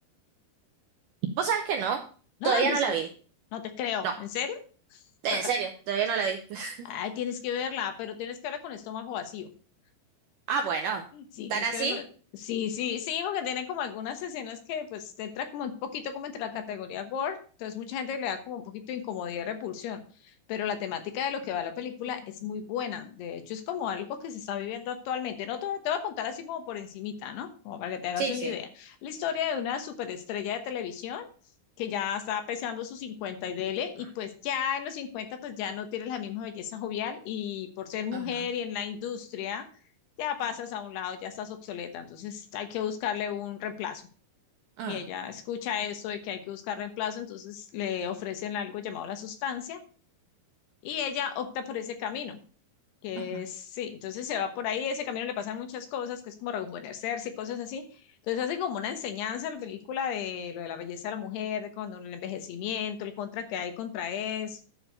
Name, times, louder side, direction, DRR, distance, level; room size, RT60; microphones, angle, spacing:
voice 1, 1.4-2.0 2.4-3.1 4.0-4.1 5.2-6.9 10.5-11.0 11.5-12.0 28.2-28.5 38.1-38.5 44.8-45.0 53.2-53.3, right 6 dB, 85° right, 5 dB, 1.9 m, -28 dB
voice 2, 2.4-3.0 3.5-4.6 4.9-5.0 5.3-5.5 6.8-9.5 11.1-12.1 12.4-31.3 31.8-39.7 40.2-44.1 44.9-49.8 50.8-52.4 53.0-64.6, left 8 dB, 80° left, 7 dB, 3.2 m, -34 dB
11.0 x 4.8 x 6.6 m, 0.41 s
omnidirectional pair, 4.7 m